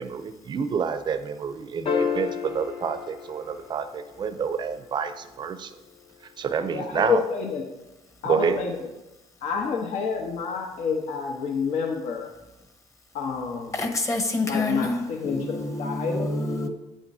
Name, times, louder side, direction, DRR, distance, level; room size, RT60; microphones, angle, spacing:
voice 1, 0.0-5.7 6.4-7.2 8.2-8.6, right 6 dB, 40° right, 0.5 m, -28 dB
sound 1, 1.9-4.4 6.6-6.7, left 6 dB, 55° left, 1.0 m, -30 dB
voice 2, 6.7-7.6 8.2-8.9 9.4-12.3 13.1-13.7 14.4-16.3, left 5 dB, 75° left, 1.0 m, -28 dB
voice 3, 13.7-16.7, left 2 dB, 25° left, 1.0 m, -27 dB
8.7 x 8.7 x 2.7 m
cardioid pair, 135°, 12 cm